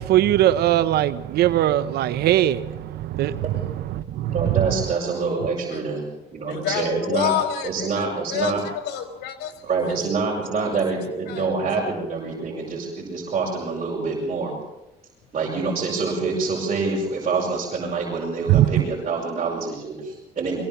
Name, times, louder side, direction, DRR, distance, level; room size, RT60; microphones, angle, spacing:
voice 1, 0.0-3.4 3.9-4.3 18.5-18.7, right 13 dB, 70° right, 1.0 m, -20 dB
voice 2, 4.3-7.3 7.6-8.6 9.6-14.5 15.3-20.6, right 4 dB, 40° right, 6.6 m, -26 dB
voice 3, 6.5-9.5 9.9-10.0 10.3-10.8 11.3-11.5, left 9 dB, 85° left, 3.7 m, -29 dB
23.0 x 18.0 x 7.2 m
cardioid pair, 110°, 17 cm